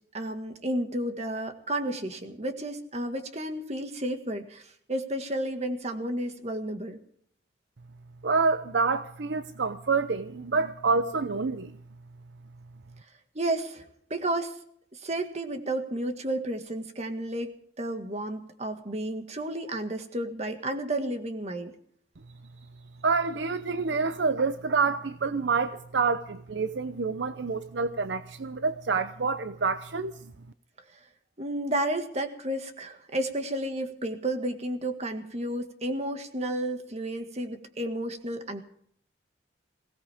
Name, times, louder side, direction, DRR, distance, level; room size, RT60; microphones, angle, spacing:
voice 1, 0.1-7.0 13.4-13.8 14.1-14.6 14.9-21.7 31.4-38.6, right 1 dB, 35° right, 1.9 m, -32 dB
voice 2, 8.2-11.8 23.0-30.3, right 4 dB, 75° right, 0.7 m, -27 dB
21.5 x 18.0 x 3.6 m
head